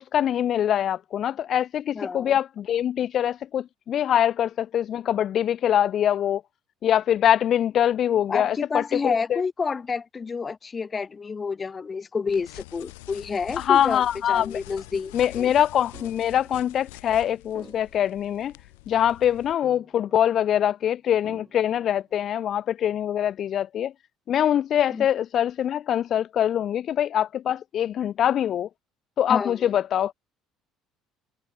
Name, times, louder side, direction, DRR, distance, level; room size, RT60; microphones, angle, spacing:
voice 1, 0.0-6.4 6.8-9.4 13.6-14.6 15.1-18.5 18.9-23.9 24.3-28.7 29.2-30.1, left 10 dB, 55° left, 0.5 m, -23 dB
voice 2, 1.9-2.3 8.3-15.5 24.9-25.1 29.3-29.7, left 5 dB, 30° left, 1.2 m, -29 dB
sound 1, 12.3-19.5, left 24 dB, 85° left, 1.8 m, -46 dB
Beautiful Ambient Melody, 14.3-14.9 15.9-17.0 17.5-18.9 19.6-20.7 21.2-22.3, right 5 dB, 35° right, 5.9 m, -52 dB
hypercardioid pair, 70°, 0 cm